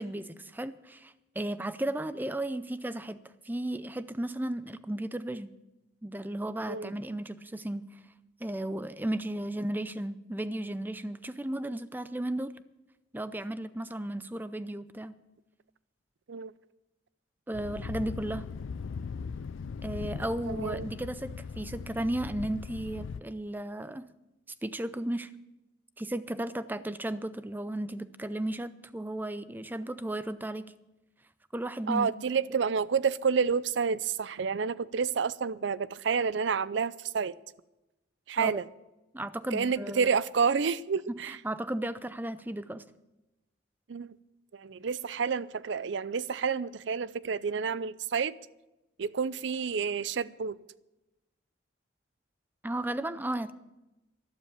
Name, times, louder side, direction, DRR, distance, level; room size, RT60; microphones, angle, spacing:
voice 1, 0.0-3.2 3.4-5.5 6.0-7.9 8.4-12.6 13.1-15.2 17.5-18.5 19.8-24.1 24.6-25.3 26.0-30.7 31.5-32.1 38.4-38.6 39.1-40.1 41.3-42.8 52.6-53.5, right 1 dB, 10° right, 0.5 m, -34 dB
Thunder, 17.5-23.2, left 5 dB, 80° left, 0.4 m, -39 dB
voice 2, 20.5-20.9 31.9-37.3 38.3-38.7 39.5-41.4 43.9-44.1 44.5-48.4 49.0-50.6, right 6 dB, 65° right, 0.5 m, -29 dB
12.5 x 12.0 x 7.0 m
head